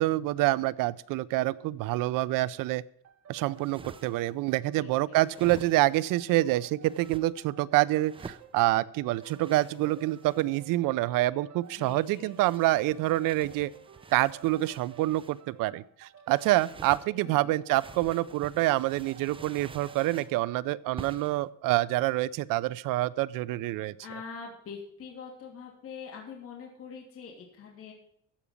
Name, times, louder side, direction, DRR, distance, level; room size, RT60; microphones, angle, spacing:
voice 1, 0.0-2.8 3.3-13.7 14.1-23.9, right 17 dB, 80° right, 20 dB, 0.6 m, -27 dB
sound 1, 3.0-20.5, right 8 dB, 50° right, 1.4 m, -54 dB
sound 2, 3.5-4.3 5.2-6.1 6.8-7.2 8.0-8.5 9.2-10.6 11.6-15.4 16.3-17.1 17.7-20.4 21.0-21.4, right 5 dB, 15° right, 0.5 m, -48 dB
voice 2, 4.7-5.2 11.8-12.3 16.8-16.9 17.2-17.6 24.0-27.9, left 5 dB, 45° left, -1 dB, 2.9 m, -44 dB
14.5 x 5.1 x 8.4 m, 0.66 s
cardioid pair, 135°, 32 cm